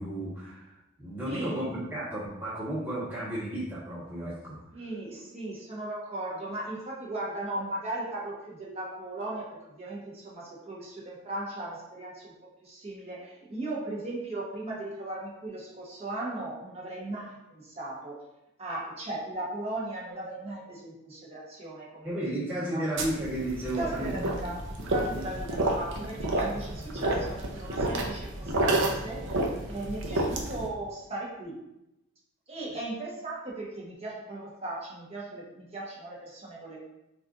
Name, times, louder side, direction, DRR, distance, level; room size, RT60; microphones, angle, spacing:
voice 1, 0.0-4.5 22.0-24.5 25.1-25.3, right 1 dB, 10° right, -10 dB, 1.4 m, -33 dB
voice 2, 1.2-1.6 4.7-12.3 12.6-18.2 18.6-22.1 22.7-22.8 23.6-29.3 29.7-31.6 32.5-36.8, right 2 dB, 30° right, -5 dB, 1.0 m, -37 dB
sound 1, 23.0-30.7, right 1 dB, 55° right, 0.6 m, -30 dB
4.1 x 2.5 x 3.8 m, 0.90 s
head